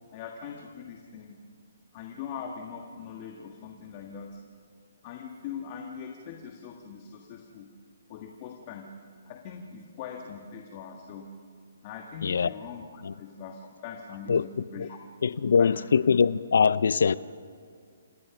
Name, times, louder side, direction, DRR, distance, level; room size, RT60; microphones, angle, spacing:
voice 1, 0.1-1.4 1.9-4.4 5.0-7.7 8.1-8.9 9.3-11.3 11.8-15.0 15.4-15.8, left 6 dB, 30° left, 1.6 m, -41 dB
voice 2, 15.2-17.2, left 6 dB, 70° left, 0.5 m, -22 dB
28.0 x 17.0 x 5.9 m
hypercardioid pair, 165°, 0 cm